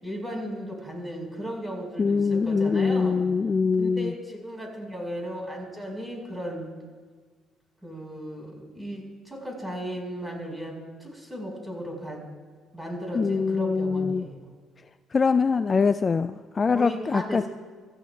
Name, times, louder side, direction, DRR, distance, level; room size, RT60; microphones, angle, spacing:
voice 1, 0.0-3.2 3.8-6.7 7.8-12.2 12.7-14.5 16.7-17.5, equal, 5° right, 0 dB, 4.9 m, -35 dB
voice 2, 2.0-4.1 13.1-14.3 15.1-17.5, left 5 dB, 35° left, 13 dB, 0.3 m, -23 dB
23.0 x 14.5 x 2.4 m, 1.5 s
hypercardioid pair, 60°, 0 cm